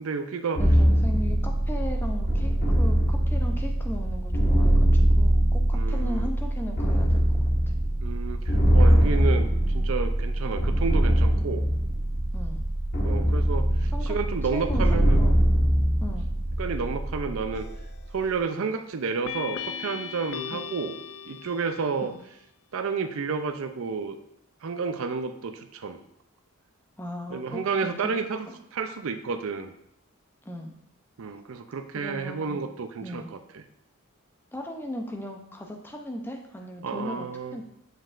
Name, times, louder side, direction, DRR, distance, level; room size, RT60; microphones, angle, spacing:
voice 1, 0.0-0.6 5.7-6.3 8.0-11.6 13.0-15.2 16.6-17.7 18.1-21.0 21.3-22.1 22.7-24.2 24.6-26.0 27.3-28.5 28.7-29.7 31.2-33.6 36.8-37.6, right 5 dB, 65° right, 9 dB, 0.4 m, -31 dB
sound 1, 0.5-18.2, right 1 dB, 45° left, 1.2 m, -22 dB
voice 2, 0.6-4.9 5.2-7.5 12.3-12.6 13.9-14.2 14.5-15.5 16.0-16.3 20.5-20.7 22.0-22.2 27.0-28.1 28.5-28.6 30.4-30.7 31.9-32.6 33.0-33.3 34.5-37.3 37.5-37.6, left 1 dB, 10° left, 2 dB, 0.5 m, -37 dB
sound 2, 17.5-18.0 19.2-22.0, left 7 dB, 70° left, 0.3 m, -37 dB
7.5 x 5.1 x 2.5 m, 0.74 s
head